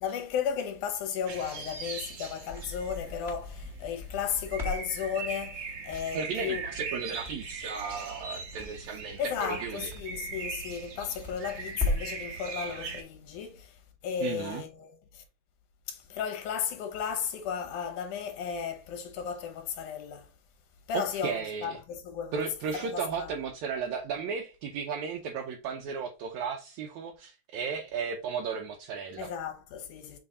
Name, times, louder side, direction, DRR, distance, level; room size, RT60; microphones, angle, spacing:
voice 1, 0.0-6.6 9.2-15.2 15.9-20.3 20.9-22.4 22.7-23.3 29.2-30.2, left 7 dB, 80° left, 2.6 m, -34 dB
sound 1, 1.3-13.0, right 5 dB, 55° right, 1.1 m, -40 dB
Crackle, 2.0-12.2, left 2 dB, 25° left, 1.9 m, -39 dB
voice 2, 6.1-9.9 14.2-14.6 20.9-21.8 22.3-29.3, right 6 dB, 75° right, 1.9 m, -35 dB
7.1 x 3.3 x 4.0 m
omnidirectional pair, 3.5 m